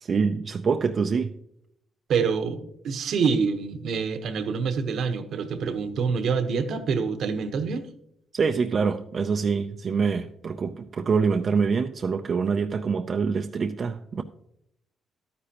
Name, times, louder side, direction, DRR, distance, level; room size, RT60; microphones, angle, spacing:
voice 1, 0.0-1.3 8.3-14.2, right 5 dB, 40° right, 6 dB, 0.5 m, -25 dB
voice 2, 2.1-7.9, right 5 dB, 65° right, 8 dB, 1.0 m, -26 dB
12.0 x 9.7 x 2.9 m, 0.75 s
cardioid pair, 115°, 0 cm